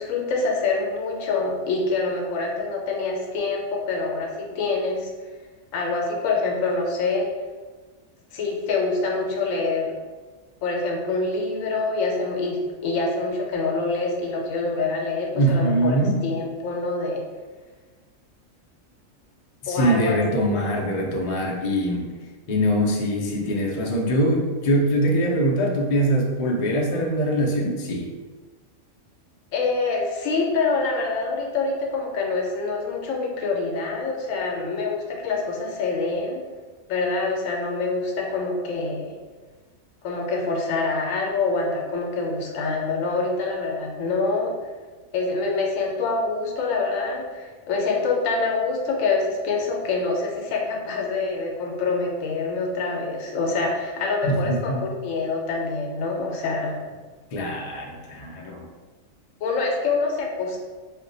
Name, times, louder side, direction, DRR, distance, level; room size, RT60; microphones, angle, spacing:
voice 1, 0.0-5.1 5.7-7.3 8.3-9.9 10.6-17.3 19.7-20.2 29.5-36.4 36.9-39.1 40.0-44.6 45.1-56.8 59.4-60.6, left 3 dB, 80° left, 0 dB, 1.0 m, -26 dB
voice 2, 15.4-16.3 19.6-22.1 22.5-28.1 54.2-54.8 57.3-58.7, right 1 dB, 65° left, -1 dB, 0.4 m, -23 dB
2.6 x 2.1 x 3.8 m, 1.3 s
omnidirectional pair, 1.4 m